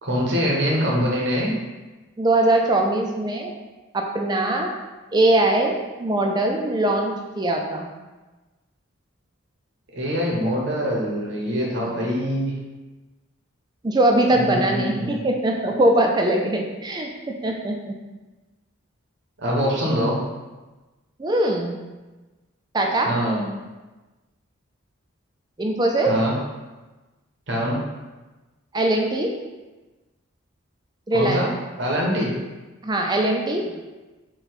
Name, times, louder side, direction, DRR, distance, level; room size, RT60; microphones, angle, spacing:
voice 1, 0.0-1.5 9.9-12.5 14.3-15.1 19.4-20.2 23.1-23.5 26.1-26.3 27.5-27.8 31.1-31.5 31.8-32.3, equal, 55° right, -3 dB, 0.8 m, -23 dB
voice 2, 2.2-3.5 3.9-4.7 5.1-7.9 11.8-11.9 13.8-17.1 17.4-17.9 21.2-21.7 22.7-23.1 25.6-26.1 28.7-29.3 31.1-31.5 32.8-33.8, right 1 dB, 20° right, 2 dB, 0.3 m, -21 dB
4.2 x 2.3 x 4.1 m, 1.2 s
head